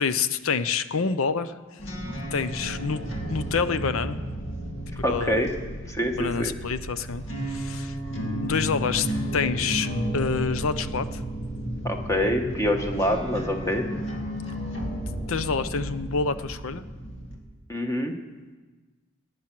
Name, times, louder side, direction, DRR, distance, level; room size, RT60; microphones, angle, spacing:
voice 1, 0.0-1.8 2.3-3.0 3.3-4.2 5.1-5.4 6.2-8.0 8.4-9.1 9.3-11.2 15.3-16.8, left 5 dB, 80° left, 13 dB, 0.7 m, -27 dB
sound 1, 1.8-17.4, right 1 dB, 60° left, 1.9 m, -33 dB
voice 2, 5.0-5.5 5.9-6.5 11.8-13.8 17.7-18.1, equal, 15° left, 4 dB, 1.1 m, -25 dB
19.5 x 9.1 x 6.0 m, 1.3 s
head